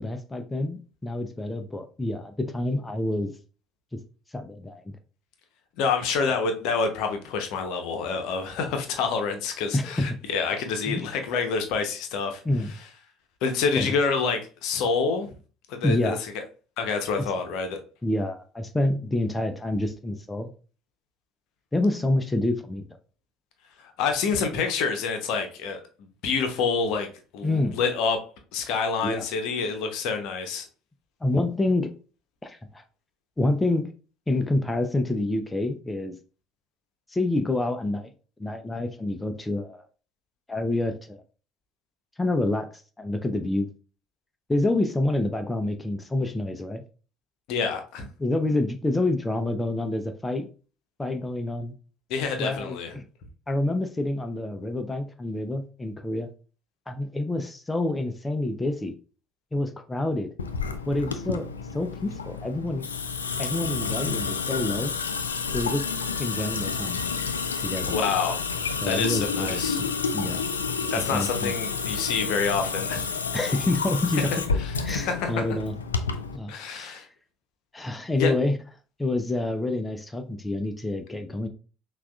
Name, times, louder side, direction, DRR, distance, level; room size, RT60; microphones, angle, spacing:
voice 1, 0.0-3.3 3.9-4.0 4.3-5.0 9.7-10.1 10.9-11.1 12.4-12.7 13.8-13.9 15.8-16.2 17.2-17.3 18.0-20.5 21.7-22.8 27.4-27.8 29.0-29.2 31.2-31.9 32.4-32.8 33.4-33.9 34.3-36.2 37.1-38.1 38.4-39.9 40.5-41.2 42.2-43.7 44.5-46.8 48.2-50.5 51.0-51.7 52.4-53.0 53.5-56.3 56.9-58.9 59.5-60.3 60.9-62.9 63.4-64.9 65.5-65.8 66.2-67.0 67.6-68.0 68.8-69.9 70.1-70.4 70.9-71.5 73.3-74.3 74.8-75.7 76.3-77.0 77.7-78.6 79.0-81.5, left 2 dB, 15° left, 7 dB, 0.5 m, -27 dB
voice 2, 5.8-12.4 13.4-15.3 15.7-16.2 16.8-17.8 23.8-28.2 28.5-30.7 47.5-48.1 52.1-52.9 67.9-68.4 68.8-69.8 70.9-73.1 74.6-74.7 75.0-75.6 76.5-77.1 78.2-78.3, left 5 dB, 65° left, 6 dB, 0.7 m, -27 dB
Water tap faucet / Sink (filling or washing) / Drip, 60.4-76.4, left 5 dB, 85° left, 0.3 m, -30 dB
5.9 x 2.4 x 2.3 m, 0.37 s
hypercardioid pair, 60°, 0 cm